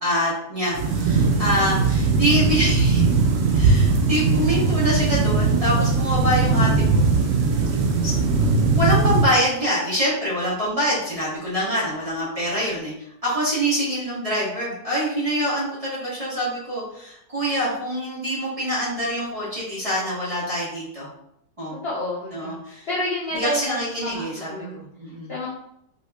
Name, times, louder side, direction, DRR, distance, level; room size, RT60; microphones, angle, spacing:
voice 1, 0.0-3.1 3.5-7.0 8.0-8.1 8.7-12.9 13.2-21.1 21.6-21.7 22.3-22.9 23.3-25.3, equal, 25° right, -8 dB, 0.9 m, -25 dB
sound 1, 0.7-9.2, right 4 dB, 75° right, 0.7 m, -19 dB
voice 2, 21.8-24.8 25.3-25.5, left 1 dB, 75° left, -6 dB, 0.5 m, -29 dB
4.7 x 2.3 x 2.3 m, 0.76 s
omnidirectional pair, 1.9 m